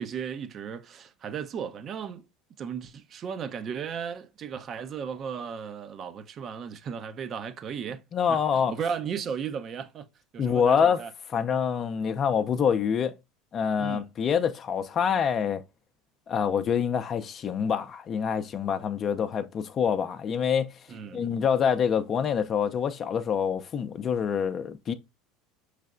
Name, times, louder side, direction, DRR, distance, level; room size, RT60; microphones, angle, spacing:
voice 1, 0.0-2.3 2.6-8.0 8.3-10.1 10.3-11.1 13.8-14.0 20.9-21.4, right 7 dB, 40° right, 0.6 m, -35 dB
voice 2, 8.1-8.7 10.4-11.0 11.3-13.1 13.5-15.6 16.3-20.7 21.1-24.9, left 7 dB, 40° left, 0.5 m, -26 dB
5.6 x 3.2 x 2.4 m
hypercardioid pair, 75°, 0 cm